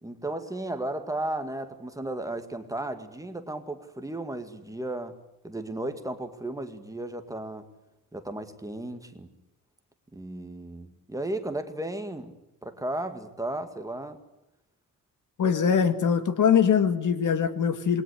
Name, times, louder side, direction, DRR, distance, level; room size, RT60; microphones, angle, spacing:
voice 1, 0.0-5.2 5.4-7.6 8.1-9.3 10.1-12.3 12.6-14.2, right 1 dB, 10° right, 7 dB, 2.0 m, -34 dB
voice 2, 15.4-18.0, left 7 dB, 60° left, 10 dB, 2.2 m, -22 dB
28.0 x 22.0 x 8.2 m, 0.87 s
wide cardioid pair, 160°, 35 cm